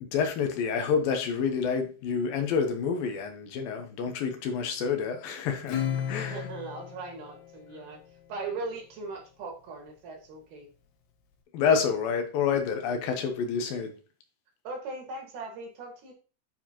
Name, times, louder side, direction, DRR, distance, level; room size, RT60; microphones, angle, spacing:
voice 1, 0.0-6.5 11.5-13.9, left 6 dB, 70° left, 2.4 m, -28 dB
Acoustic guitar / Strum, 5.7-8.6, left 9 dB, 85° left, 4.1 m, -35 dB
voice 2, 6.2-8.0 8.3-10.7 14.6-16.1, right 3 dB, 55° right, 2.8 m, -39 dB
9.2 x 4.7 x 2.9 m
omnidirectional pair, 4.9 m